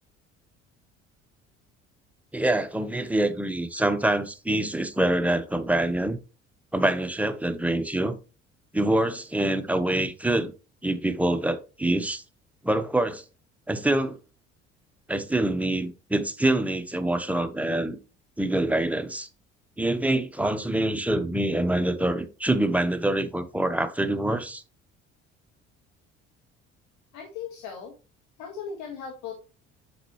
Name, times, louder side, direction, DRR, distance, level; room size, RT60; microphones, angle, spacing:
voice 1, 2.3-6.2 6.7-8.2 8.7-10.5 10.8-12.2 12.6-13.2 13.7-14.2 15.1-18.0 18.4-19.3 19.8-24.6, right 1 dB, 5° right, 1.0 m, -25 dB
voice 2, 27.1-27.9 28.4-29.3, left 6 dB, 60° left, 1.9 m, -37 dB
7.9 x 6.7 x 3.1 m
hypercardioid pair, 55°, 33 cm